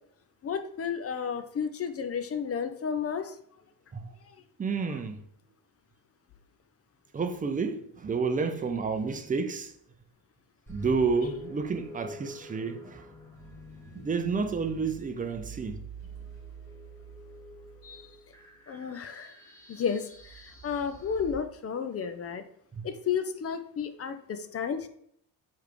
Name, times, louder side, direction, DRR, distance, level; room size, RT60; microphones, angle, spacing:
voice 1, 0.4-3.4 4.9-5.0 17.8-18.1 18.7-19.4 19.7-22.4 22.8-24.9, left 7 dB, 35° left, 0.5 m, -32 dB
voice 2, 4.6-5.2 7.1-9.7 10.7-13.0 13.9-15.8 22.7-22.8, right 4 dB, 20° right, 0.5 m, -30 dB
sound 1, 10.7-21.3, right 2 dB, 5° left, 1.3 m, -47 dB
4.7 x 3.5 x 3.1 m
supercardioid pair, 80°, 41 cm